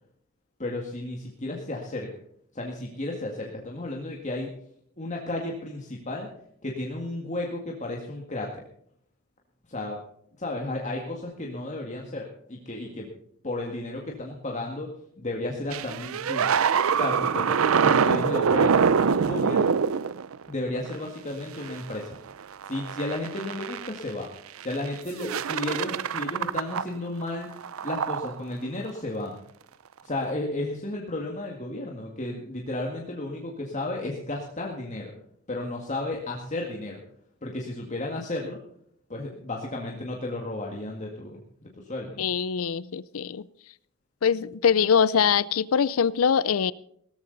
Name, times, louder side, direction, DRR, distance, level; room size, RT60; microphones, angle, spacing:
voice 1, 0.6-2.1 2.5-4.5 5.0-6.3 6.6-8.6 9.7-10.0 10.4-13.1 13.4-14.9 15.2-16.6 16.9-17.5 17.8-19.8 20.5-22.2 22.7-24.3 24.6-27.5 27.8-29.4 30.0-35.1 35.5-37.0 37.4-38.6 39.1-41.4 41.9-42.3, left 2 dB, 35° left, -1 dB, 1.9 m, -33 dB
sound 1, 15.7-21.0 21.6-21.9 22.3-24.0 24.6-24.9 25.2-27.0 27.3-28.4 30.1-30.3, right 6 dB, 75° right, 0.5 m, -25 dB
voice 2, 42.2-43.4 44.2-46.7, left 7 dB, 80° left, 20 dB, 0.5 m, -23 dB
17.5 x 13.5 x 4.0 m, 0.69 s
head